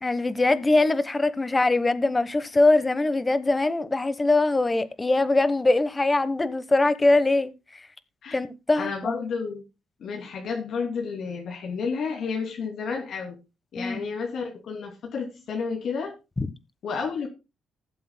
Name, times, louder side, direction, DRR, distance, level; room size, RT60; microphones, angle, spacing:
voice 1, 0.0-7.5 8.3-9.2 13.7-14.0 16.4-16.5, left 2 dB, 20° left, 1.1 m, -22 dB
voice 2, 8.7-9.6 10.0-13.4 13.7-16.1 16.8-17.3, left 5 dB, 65° left, 2.7 m, -31 dB
19.5 x 7.7 x 2.2 m
cardioid pair, 90°, 0 cm